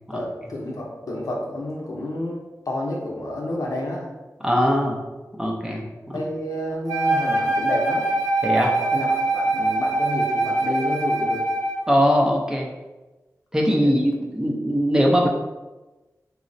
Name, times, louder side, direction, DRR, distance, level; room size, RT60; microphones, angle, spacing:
voice 1, 0.1-4.1 6.1-8.0 8.9-11.4 13.8-14.0, left 1 dB, 70° left, -2 dB, 0.6 m, -30 dB
voice 2, 4.4-5.0 5.4-6.2 8.4-8.8 11.9-12.7 13.5-15.3, equal, 10° right, -1 dB, 0.5 m, -21 dB
Wind instrument woodwind instrument, 6.9-11.9, right 2 dB, 80° right, 0.5 m, -23 dB
3.9 x 2.0 x 2.6 m, 1.1 s
wide cardioid pair, 80°, 6 cm